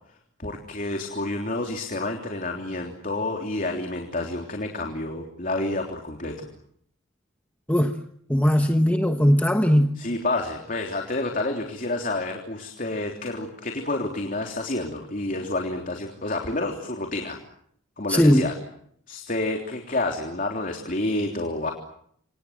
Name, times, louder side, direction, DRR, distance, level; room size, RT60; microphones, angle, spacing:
voice 1, 0.4-6.5 10.0-17.4 18.0-18.6 19.1-21.7, left 2 dB, 40° left, 2 dB, 3.4 m, -29 dB
voice 2, 8.3-9.9 18.1-18.5, equal, 10° left, 5 dB, 1.2 m, -19 dB
29.0 x 26.5 x 7.6 m, 0.69 s
head